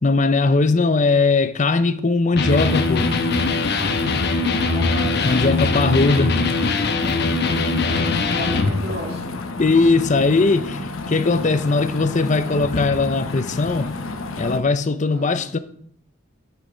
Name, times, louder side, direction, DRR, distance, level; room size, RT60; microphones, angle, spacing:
voice 1, 0.0-3.1 5.2-6.4 9.6-13.9 14.4-15.6, left 3 dB, 35° left, 0.6 m, -19 dB
Electric guitar, 2.3-8.8, left 3 dB, 55° left, 1.0 m, -21 dB
sound 1, 2.5-14.6, left 3 dB, 80° left, 1.0 m, -30 dB
voice 2, 4.4-6.3 7.9-9.3 15.1-15.5, right 1 dB, 50° right, 2.6 m, -35 dB
9.1 x 7.3 x 5.1 m
head